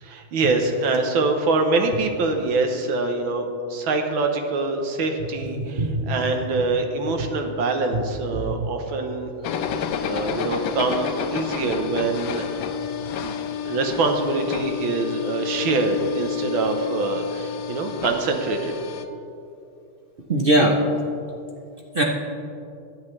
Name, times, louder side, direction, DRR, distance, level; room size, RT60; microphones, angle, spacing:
voice 1, 0.0-9.3 10.0-12.5 13.2-13.4 13.6-18.7, right 3 dB, 70° right, 4 dB, 1.8 m, -24 dB
voice 2, 5.6-6.2 8.3-8.7 20.3-20.8 21.9-22.0, right 1 dB, 50° right, 0 dB, 0.6 m, -21 dB
sound 1, 9.4-19.0, left 7 dB, 70° left, 1.4 m, -29 dB
22.0 x 8.6 x 3.3 m, 2.6 s
omnidirectional pair, 2.3 m